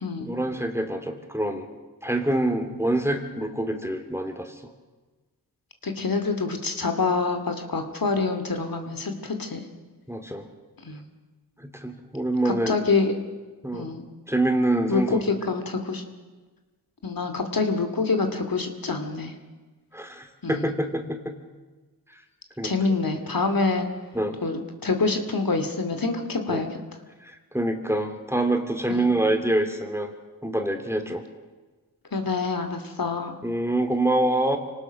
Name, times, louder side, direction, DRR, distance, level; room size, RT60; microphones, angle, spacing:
voice 1, 0.2-1.7 2.0-4.6 10.1-10.5 11.6-12.7 13.6-13.9 14.3-15.2 19.9-21.4 22.6-22.8 24.1-24.4 26.5-26.6 27.2-30.1 30.4-31.3 33.4-34.6, right 1 dB, 5° right, 6 dB, 2.9 m, -26 dB
voice 2, 5.8-9.6 10.8-11.0 12.4-13.1 13.7-14.0 14.9-16.0 17.0-19.3 20.4-20.7 22.6-23.9 24.4-26.7 28.9-29.1 32.1-33.3, left 4 dB, 60° left, 6 dB, 2.6 m, -26 dB
26.0 x 18.5 x 6.5 m, 1.3 s
cardioid pair, 45°, 39 cm